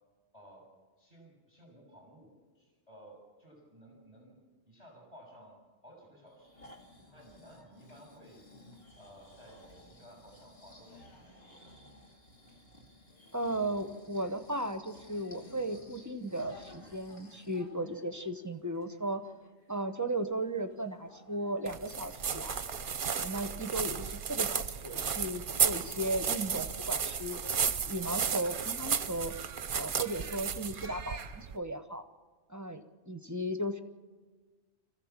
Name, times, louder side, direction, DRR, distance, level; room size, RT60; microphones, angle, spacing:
voice 1, 0.3-0.6 1.0-4.4 4.7-5.6 5.8-6.6 7.1-8.4 9.0-11.5, equal, 35° left, 0 dB, 6.8 m, -56 dB
Breathing, 6.3-17.7 18.1-18.2, left 1 dB, 60° left, 2.7 m, -56 dB
sound 1, 7.0-25.8, left 1 dB, 80° left, 6.4 m, -62 dB
voice 2, 13.3-19.3 19.7-22.6 23.2-27.4 27.8-29.3 29.7-32.0 32.5-33.8, right 1 dB, 15° right, 8 dB, 1.0 m, -36 dB
sound 2, 21.7-31.6, right 7 dB, 55° right, 0.9 m, -33 dB
26.0 x 15.5 x 7.4 m, 1.4 s
omnidirectional pair, 1.1 m